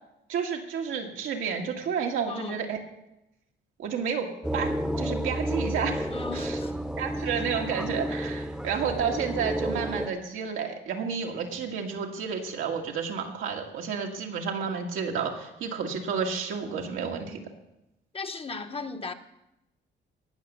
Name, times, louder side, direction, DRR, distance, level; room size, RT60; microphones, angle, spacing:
voice 1, 0.3-2.8 3.8-4.3 4.5-4.7 5.0-6.1 6.3-6.6 7.0-17.4, right 6 dB, 85° right, 2.0 m, -31 dB
voice 2, 2.3-2.6 6.1-6.8 18.1-19.1, left 4 dB, 30° left, 1.0 m, -36 dB
sound 1, 4.4-10.1, equal, 5° right, 0.9 m, -31 dB
18.0 x 6.1 x 6.8 m
cardioid pair, 90°, 20 cm